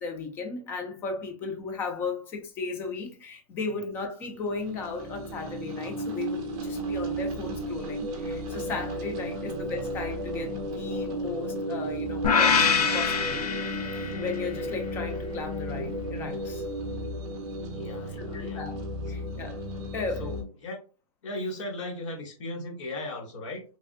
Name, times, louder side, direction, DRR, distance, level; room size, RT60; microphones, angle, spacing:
voice 1, 0.0-13.7 14.1-16.6 18.3-18.8 19.1-19.6 19.9-20.3, left 4 dB, 10° left, 0.3 m, -35 dB
sound 1, 4.4-20.4, right 1 dB, 25° right, 0.7 m, -34 dB
sound 2, 12.2-14.5, left 6 dB, 75° left, 0.6 m, -24 dB
voice 2, 17.7-18.6 20.2-20.8 21.2-23.6, left 1 dB, 50° left, 1.2 m, -37 dB
3.3 x 2.4 x 2.4 m
hypercardioid pair, 150°, 20 cm